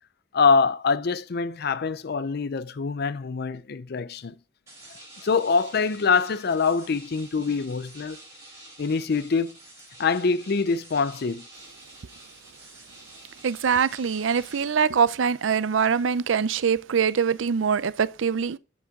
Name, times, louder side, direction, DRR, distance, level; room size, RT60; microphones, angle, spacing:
voice 1, 0.3-4.3 5.2-8.2 8.8-9.6 10.0-11.4, left 5 dB, 55° left, 0.5 m, -24 dB
sound 1, 4.7-14.6, right 1 dB, 15° right, 5.5 m, -48 dB
voice 2, 13.4-18.6, right 6 dB, 75° right, 0.5 m, -23 dB
11.5 x 5.5 x 3.6 m
head